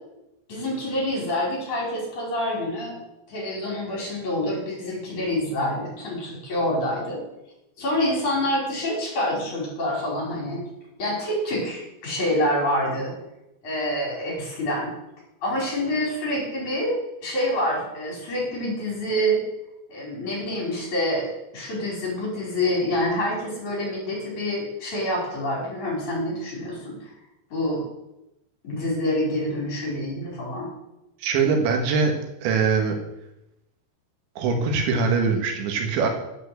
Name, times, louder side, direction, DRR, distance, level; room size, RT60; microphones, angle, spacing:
voice 1, 0.5-3.0 3.3-7.2 7.8-10.6 11.0-13.1 13.6-14.9 15.4-19.4 19.9-27.0 27.5-27.8 28.6-30.7, left 1 dB, 45° left, -3 dB, 6.3 m, -27 dB
voice 2, 31.2-32.1 32.4-33.0 34.4-36.1, right 5 dB, 85° right, 4 dB, 4.0 m, -22 dB
11.0 x 8.5 x 8.0 m, 0.89 s
omnidirectional pair, 5.1 m